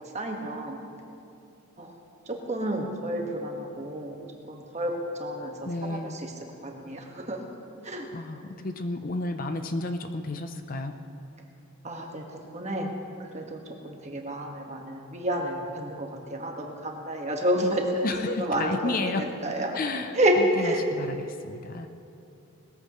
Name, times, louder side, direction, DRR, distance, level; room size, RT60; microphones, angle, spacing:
voice 1, 0.1-0.8 1.8-1.9 2.3-4.2 4.5-5.5 5.9-6.3 6.6-7.4 7.8-8.1 11.8-12.2 12.5-12.9 13.2-18.1 18.4-19.8 20.1-20.8, right 1 dB, 30° right, 1 dB, 1.5 m, -29 dB
voice 2, 5.6-6.2 8.1-11.0 18.0-19.3 19.7-21.9, left 2 dB, 40° left, 7 dB, 0.6 m, -32 dB
20.0 x 14.0 x 3.1 m, 2.7 s
head